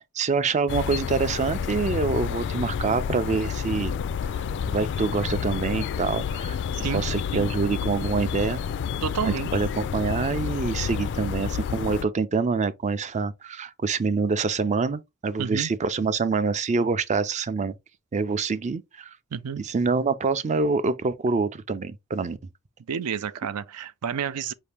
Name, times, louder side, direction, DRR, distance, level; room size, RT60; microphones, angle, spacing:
voice 1, 0.1-3.9 4.7-6.6 6.9-8.6 9.5-17.7 18.1-19.1 19.6-22.4, right 4 dB, 30° right, 0.4 m, -26 dB
sound 1, 0.7-12.0, left 7 dB, 55° left, 0.3 m, -29 dB
voice 2, 9.0-9.5 15.4-15.7 19.3-19.6 22.9-24.5, right 7 dB, 85° right, 0.5 m, -30 dB
5.0 x 2.8 x 3.4 m
head